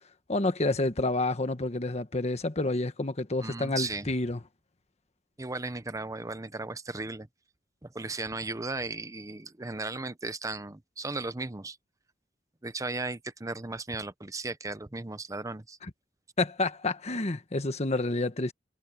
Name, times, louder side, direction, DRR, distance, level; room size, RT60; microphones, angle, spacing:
voice 1, 0.3-4.4 16.4-18.5, left 2 dB, 40° left, 1.3 m, -29 dB
voice 2, 3.4-4.1 5.4-7.3 7.8-11.8 12.6-15.8, right 3 dB, 20° right, 0.8 m, -36 dB
head